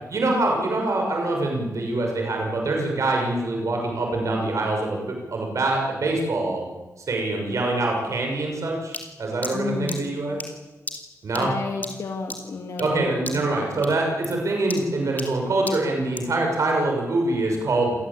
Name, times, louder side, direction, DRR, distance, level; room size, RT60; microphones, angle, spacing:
voice 1, 0.1-6.6 7.1-10.4 11.2-11.5 12.8-17.9, right 2 dB, 70° right, 1 dB, 6.5 m, -24 dB
sound 1, 8.9-13.0 13.3-13.6 13.8-16.4, left 3 dB, 30° left, 3.4 m, -37 dB
voice 2, 9.5-10.0 11.4-13.5, left 4 dB, 75° left, 2 dB, 3.0 m, -31 dB
28.5 x 18.5 x 8.7 m, 1.1 s
wide cardioid pair, 145°, 6 cm